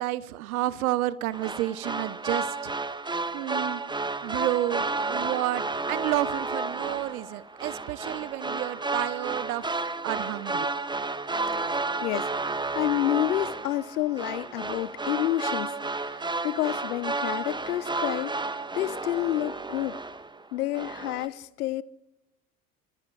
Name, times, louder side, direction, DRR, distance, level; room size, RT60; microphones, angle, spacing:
voice 1, 0.0-2.7 3.3-3.8 4.2-5.6 5.9-9.7 10.0-10.7, right 15 dB, 70° right, 0.9 m, -30 dB
sound 1, 1.3-20.4 20.7-21.3, right 3 dB, 10° right, 1.3 m, -32 dB
voice 2, 11.7-20.0 20.5-21.8, left 15 dB, 75° left, 0.8 m, -30 dB
27.0 x 25.0 x 4.8 m
figure-of-eight pair, 65°, 45 cm